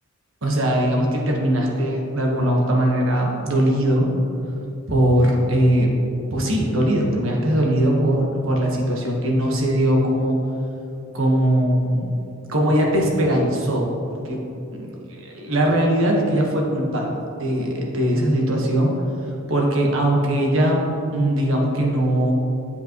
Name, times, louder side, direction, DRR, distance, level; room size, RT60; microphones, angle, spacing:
voice 1, 0.4-4.1 4.9-5.9 6.3-10.4 11.1-12.2 12.5-14.4 14.7-17.1 17.4-18.9 19.5-20.8 21.1-22.3, right 1 dB, 70° right, -1 dB, 1.4 m, -20 dB
8.2 x 7.9 x 3.1 m, 2.8 s
head